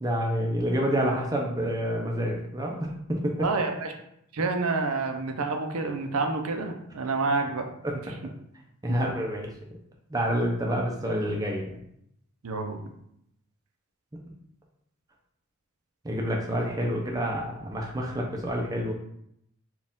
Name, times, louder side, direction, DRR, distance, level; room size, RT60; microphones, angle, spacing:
voice 1, 0.0-3.5 8.1-8.2 8.8-9.5 10.1-11.8 16.0-18.9, equal, 15° right, -1 dB, 0.4 m, -28 dB
voice 2, 3.4-3.9 4.3-7.7 8.9-9.0 12.4-12.9, right 3 dB, 80° right, 4 dB, 0.6 m, -28 dB
4.2 x 2.4 x 3.6 m, 0.74 s
head